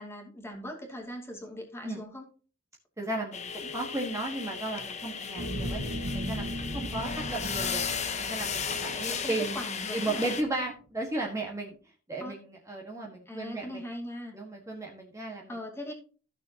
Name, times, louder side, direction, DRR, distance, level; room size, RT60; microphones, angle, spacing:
voice 1, 0.0-2.3 9.0-10.2 12.2-12.4 13.3-14.4 15.5-15.9, left 1 dB, 10° left, 1 dB, 2.4 m, -40 dB
voice 2, 3.0-5.8 6.1-7.8 8.2-9.6 9.9-11.7 12.1-13.8 14.3-15.6, right 2 dB, 15° right, -1 dB, 1.5 m, -35 dB
sound 1, 3.3-10.4, left 6 dB, 35° left, 1.1 m, -35 dB
sound 2, 5.4-9.9 10.3-10.5, equal, 75° right, 1.4 m, -37 dB
15.0 x 6.6 x 2.9 m, 0.38 s
head